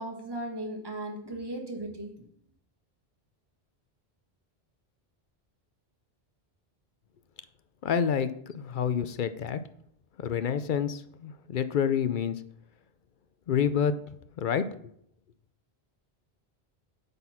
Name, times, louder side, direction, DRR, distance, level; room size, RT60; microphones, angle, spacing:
voice 1, 0.0-2.1, right 1 dB, 25° right, 2 dB, 1.4 m, -36 dB
voice 2, 7.8-9.6 10.2-12.3 13.5-14.0 14.4-14.7, left 7 dB, 60° left, 12 dB, 0.6 m, -28 dB
8.9 x 4.2 x 5.7 m, 0.68 s
omnidirectional pair, 1.1 m